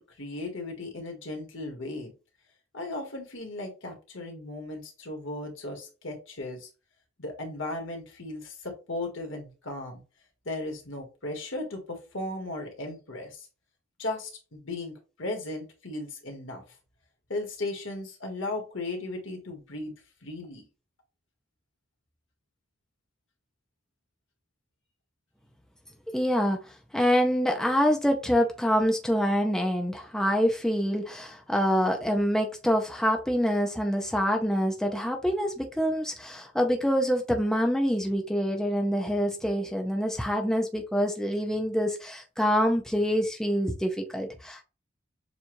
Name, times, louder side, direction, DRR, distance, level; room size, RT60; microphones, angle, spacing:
voice 1, 0.0-2.1 2.7-6.7 7.2-10.0 10.5-13.5 14.0-16.6 17.3-19.9 20.2-20.7, left 2 dB, 70° left, 1.6 m, -36 dB
voice 2, 26.1-26.6 26.9-44.6, equal, 5° left, 0.6 m, -26 dB
6.9 x 2.4 x 3.0 m
head